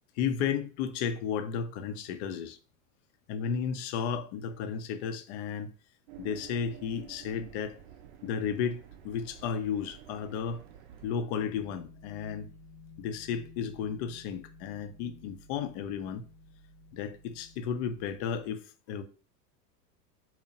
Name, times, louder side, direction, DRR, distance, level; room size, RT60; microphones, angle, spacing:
voice 1, 0.2-2.6 3.3-5.7 6.2-7.8 8.2-8.8 9.0-10.6 11.0-12.5 13.0-16.2 16.9-18.6 18.9-19.0, left 7 dB, 45° left, 0.4 m, -33 dB
sound 1, 6.1-11.1, right 10 dB, 60° right, 0.5 m, -50 dB
sound 2, 11.3-18.5, left 2 dB, 90° left, 1.0 m, -54 dB
2.7 x 2.0 x 2.7 m
hypercardioid pair, 100°, 49 cm